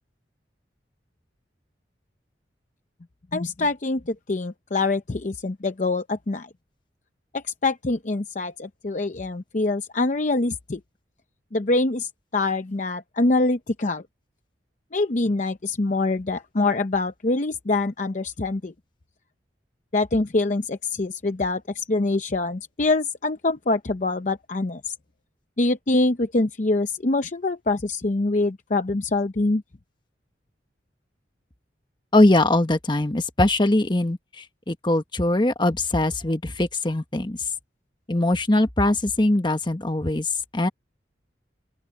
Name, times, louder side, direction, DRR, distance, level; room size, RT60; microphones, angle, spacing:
voice 1, 3.3-6.5 7.3-10.8 11.5-14.0 14.9-18.7 19.9-24.9 25.6-29.6, left 2 dB, 45° left, 0.7 m, -24 dB
voice 2, 32.1-37.4 38.1-40.7, left 1 dB, 25° left, 1.3 m, -21 dB
open air
head